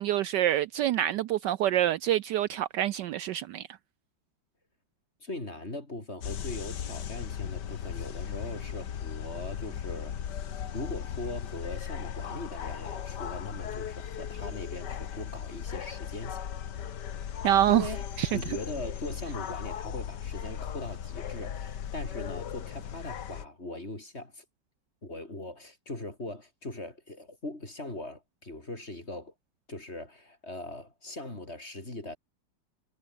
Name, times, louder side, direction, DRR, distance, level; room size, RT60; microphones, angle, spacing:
voice 1, 0.0-3.7 17.4-17.9 18.2-18.3, right 12 dB, 70° right, 1.1 m, -26 dB
voice 2, 5.2-10.2 10.7-16.5 17.7-18.0 18.3-24.5 25.0-29.3 29.7-32.2, left 2 dB, 30° left, 5.3 m, -40 dB
sound 1, 6.2-23.5, left 9 dB, 60° left, 1.8 m, -37 dB
omnidirectional pair, 2.1 m